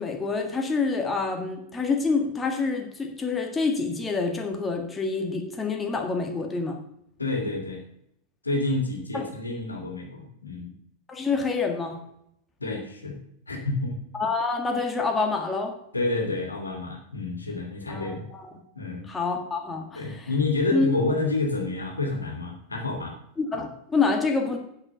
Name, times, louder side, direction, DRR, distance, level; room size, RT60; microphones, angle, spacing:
voice 1, 0.0-6.8 9.1-9.2 11.1-12.0 14.1-15.7 17.9-18.5 19.1-20.3 20.7-20.9 23.4-24.6, left 4 dB, 15° left, 3 dB, 1.8 m, -27 dB
voice 2, 7.2-7.8 8.4-10.7 12.6-13.2 13.5-14.0 15.9-18.2 18.7-19.1 20.0-23.2, left 3 dB, 80° left, 2 dB, 2.3 m, -29 dB
9.6 x 7.6 x 6.2 m, 0.74 s
figure-of-eight pair, 90°, 0 cm